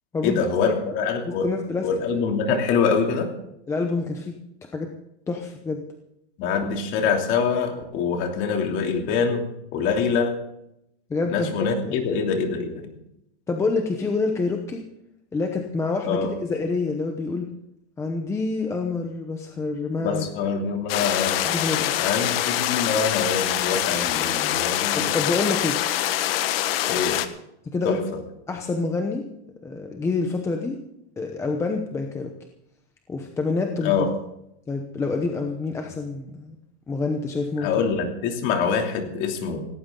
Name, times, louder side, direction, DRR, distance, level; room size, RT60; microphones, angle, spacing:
voice 1, 0.2-1.5 1.8-3.3 6.4-10.3 11.3-12.9 16.1-16.3 20.0-21.4 22.0-25.1 26.9-27.2 27.8-28.2 33.8-34.1 37.6-39.7, left 5 dB, 35° left, 3 dB, 3.0 m, -25 dB
voice 2, 1.4-1.9 3.7-4.3 4.7-4.9 5.3-5.8 11.1-11.5 11.9-12.1 13.5-14.8 15.3-17.5 18.0-20.3 21.5-22.0 25.0-25.8 26.1-26.2 27.7-28.0 28.5-29.2 29.6-30.8 31.2-32.3 33.1-34.1 34.7-36.6 36.9-37.7, left 3 dB, 10° left, 3 dB, 0.9 m, -27 dB
sound 1, 20.9-27.3, left 13 dB, 55° left, 1.4 m, -24 dB
18.0 x 17.5 x 3.9 m, 0.81 s
supercardioid pair, 170°, 35 cm